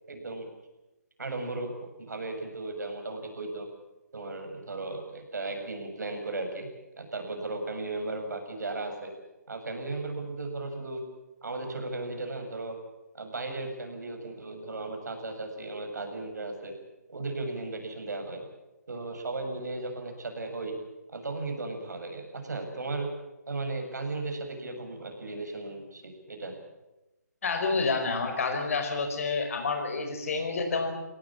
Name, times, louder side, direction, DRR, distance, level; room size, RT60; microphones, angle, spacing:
voice 1, 0.1-0.5 1.2-3.7 4.1-6.7 7.0-9.1 9.5-11.0 11.4-12.8 13.1-16.7 17.1-18.4 18.9-20.8 21.1-23.1 23.5-26.6, right 2 dB, 70° right, 5 dB, 6.9 m, -36 dB
voice 2, 27.4-30.9, left 4 dB, 50° left, 5 dB, 5.1 m, -29 dB
23.0 x 18.0 x 8.6 m, 1.0 s
hypercardioid pair, 160°, 10 cm